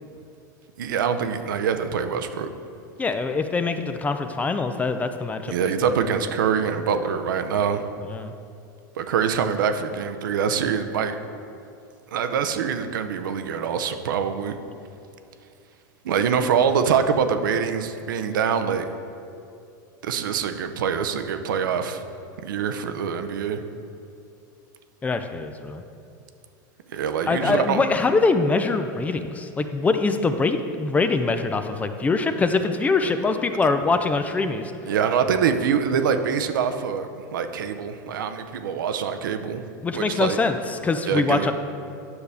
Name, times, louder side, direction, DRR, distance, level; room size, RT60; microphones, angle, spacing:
voice 1, 0.8-2.5 5.5-7.9 9.0-11.2 12.1-14.6 16.0-18.9 20.0-22.0 22.4-23.6 26.9-27.9 34.8-39.6 39.9-40.4 41.0-41.5, right 7 dB, 90° right, 8 dB, 0.6 m, -24 dB
voice 2, 3.0-5.5 5.8-5.9 8.1-8.3 25.0-25.8 27.3-34.7 39.8-41.5, left 3 dB, 15° left, 8 dB, 0.4 m, -23 dB
9.6 x 6.6 x 3.4 m, 2.5 s
supercardioid pair, 130°, 10 cm